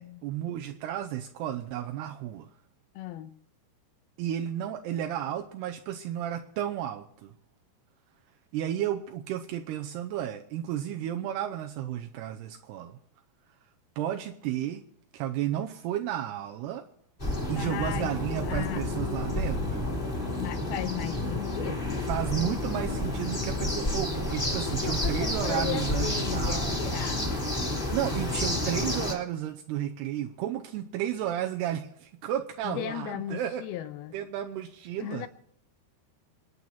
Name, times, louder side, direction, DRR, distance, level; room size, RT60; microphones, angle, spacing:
voice 1, 0.0-2.5 4.2-7.3 8.5-13.0 14.0-14.8 15.1-16.9 17.5-19.9 22.0-27.0 27.9-33.6 34.1-35.3, right 11 dB, 80° right, 2.7 m, -33 dB
voice 2, 3.0-3.3 17.6-18.1 18.5-18.9 20.4-22.1 24.7-27.3 32.6-34.2 35.0-35.3, left 12 dB, 75° left, 2.4 m, -36 dB
sound 1, 17.2-29.1, left 1 dB, 15° left, 2.4 m, -30 dB
26.5 x 9.6 x 4.3 m
omnidirectional pair, 5.0 m